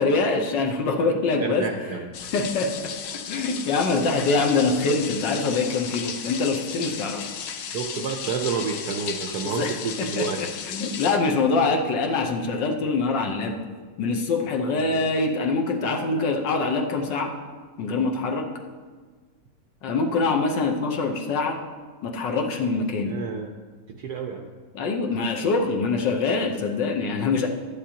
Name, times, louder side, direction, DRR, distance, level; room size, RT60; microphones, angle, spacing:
voice 1, 0.0-1.7 2.3-7.3 9.4-13.6 14.0-17.3 17.8-18.5 19.8-21.6 22.0-23.2 24.7-27.5, left 3 dB, 65° left, 2 dB, 1.4 m, -24 dB
voice 2, 1.2-2.1 7.7-10.4 14.6-15.0 23.0-23.5 23.9-24.5, right 5 dB, 70° right, 3 dB, 1.0 m, -30 dB
sound 1, 2.1-11.2, left 7 dB, 90° left, 1.6 m, -35 dB
12.5 x 10.0 x 2.9 m, 1.5 s
omnidirectional pair, 2.3 m